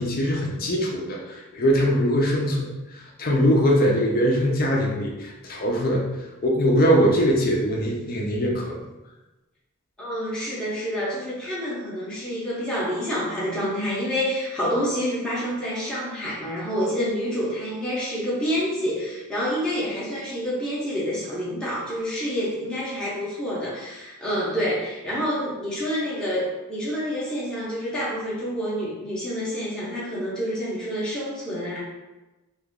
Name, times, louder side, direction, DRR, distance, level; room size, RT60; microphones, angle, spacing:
voice 1, 0.0-6.1 6.4-8.8, equal, 45° left, -1 dB, 0.6 m, -22 dB
voice 2, 10.0-31.8, equal, 5° left, -8 dB, 0.7 m, -28 dB
3.0 x 2.4 x 3.6 m, 1.1 s
head